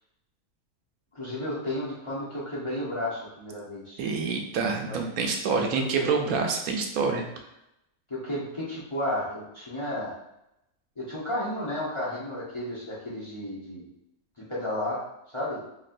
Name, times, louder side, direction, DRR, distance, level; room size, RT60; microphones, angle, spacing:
voice 1, 1.1-4.1 4.8-5.0 5.5-5.7 6.0-6.1 8.1-10.1 11.0-13.8 14.5-15.0 15.3-15.6, left 1 dB, 25° left, -7 dB, 0.8 m, -32 dB
voice 2, 4.0-7.2, right 5 dB, 80° right, 3 dB, 1.0 m, -27 dB
4.2 x 3.0 x 2.5 m, 0.85 s
omnidirectional pair, 1.5 m